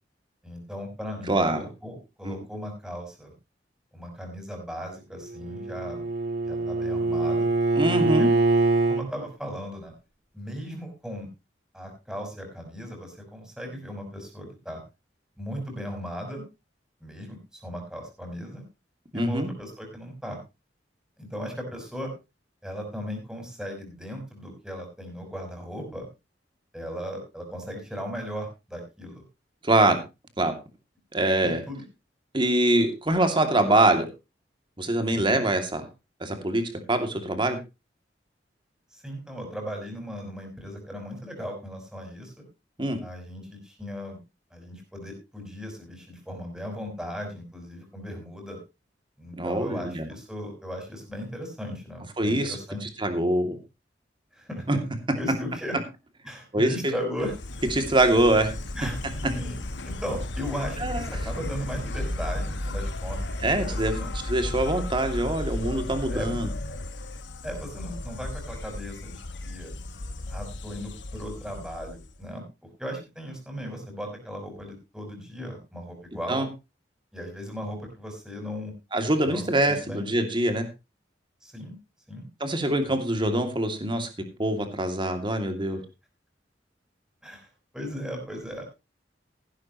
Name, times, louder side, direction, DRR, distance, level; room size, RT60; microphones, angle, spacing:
voice 1, 0.4-3.3 3.9-6.0 6.4-7.5 8.0-8.4 8.9-9.9 10.3-11.3 11.7-14.8 15.4-16.4 17.0-18.6 19.1-20.4 21.2-22.1 22.6-26.1 26.7-29.2 31.4-31.8 35.1-35.4 38.9-42.4 43.0-44.2 44.5-48.6 49.2-52.8 54.3-54.7 55.1-55.8 56.2-57.3 58.7-59.0 59.3-59.6 59.8-63.3 63.6-64.1 66.1-66.4 67.4-69.7 70.3-76.4 77.1-78.7 79.3-80.0 81.4-81.7 82.1-82.3 82.9-83.0 87.2-87.5 87.7-88.6, equal, 5° right, 2 dB, 5.6 m, -37 dB
voice 2, 1.3-1.7 2.2-2.4 7.8-8.3 19.1-19.5 29.6-30.0 30.4-30.5 31.1-31.6 32.3-34.1 34.8-35.8 36.2-37.6 42.8-43.0 49.4-50.1 52.2-52.6 52.8-53.6 54.7-54.8 56.5-56.9 57.7-58.5 60.8-61.0 63.4-63.9 64.3-66.5 76.3-76.5 78.9-80.6 82.4-84.1 84.4-85.8, right 1 dB, 30° right, 6 dB, 2.6 m, -24 dB
Bowed string instrument, 5.2-9.0, right 2 dB, 65° right, 2.5 m, -24 dB
Insect, 57.2-72.3, left 1 dB, 75° left, 1.3 m, -34 dB
15.5 x 11.5 x 3.1 m, 0.27 s
head